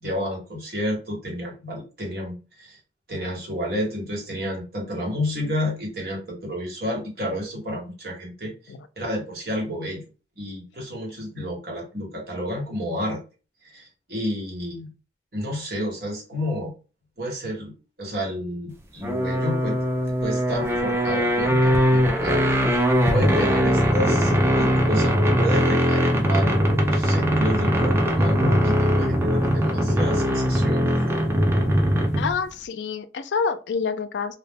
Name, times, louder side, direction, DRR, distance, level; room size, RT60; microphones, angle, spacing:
voice 1, 0.0-2.8 3.1-10.1 10.4-13.2 13.6-14.9 15.3-16.7 17.2-17.7 18.0-19.8 20.2-22.8 23.1-30.9, equal, 60° right, 1.1 m, -30 dB
sound 1, 19.0-32.4, equal, 15° right, 0.3 m, -21 dB
voice 2, 32.2-34.4, left 5 dB, 90° left, 0.4 m, -28 dB
2.2 x 2.1 x 3.4 m
head